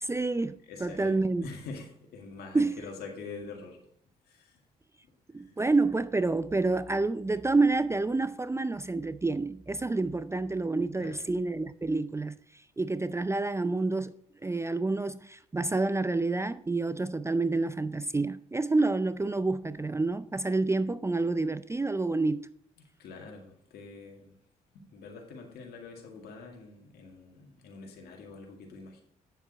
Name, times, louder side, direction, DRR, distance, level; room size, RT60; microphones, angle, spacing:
voice 1, 0.0-1.5 2.5-2.7 5.3-12.4 12.8-14.1 14.4-22.4, right 3 dB, 15° right, 0.5 m, -28 dB
voice 2, 0.7-3.8 4.3-4.6 5.4-5.6 11.0-11.2 23.0-24.3 24.7-29.0, left 4 dB, 75° left, 2.1 m, -45 dB
9.1 x 7.3 x 5.1 m
hypercardioid pair, 50°, 17 cm